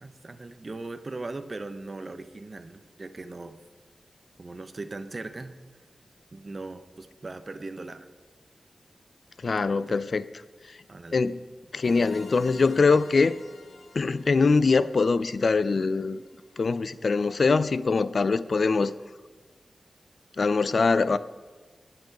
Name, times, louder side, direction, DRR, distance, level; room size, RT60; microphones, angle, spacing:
voice 1, 0.0-3.6 4.4-5.5 6.3-8.1 9.7-10.0 10.9-11.2, right 3 dB, 40° right, 10 dB, 0.7 m, -39 dB
voice 2, 9.4-10.2 11.1-11.4 11.7-13.3 13.9-16.2 16.6-18.9 20.4-21.2, left 4 dB, 60° left, 16 dB, 0.4 m, -23 dB
sound 1, 11.8-16.5, left 3 dB, 85° left, 0.9 m, -48 dB
9.2 x 7.7 x 4.7 m, 1.3 s
wide cardioid pair, 75°, 0 cm